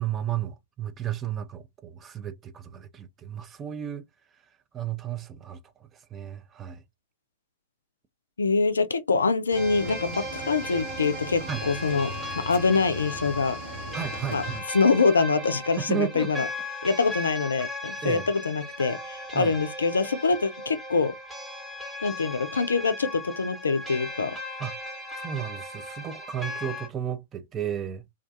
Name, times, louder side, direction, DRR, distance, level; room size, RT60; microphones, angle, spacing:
voice 1, 0.0-4.0 4.7-5.6 6.1-6.8 11.5-11.6 13.9-14.7 15.8-16.5 18.0-18.2 19.3-19.5 24.6-24.7 25.2-28.0, right 9 dB, 25° right, 0.4 m, -33 dB
voice 2, 8.4-13.6 14.3-16.5 16.8-21.1 22.0-24.3, left 4 dB, 75° left, 0.3 m, -25 dB
sound 1, 9.5-26.9, left 1 dB, 5° right, 0.8 m, -37 dB
Cricket / Waves surf, 9.5-14.6, right 3 dB, 50° right, 0.8 m, -39 dB
2.3 x 2.2 x 2.5 m
figure-of-eight pair, 100°, 0 cm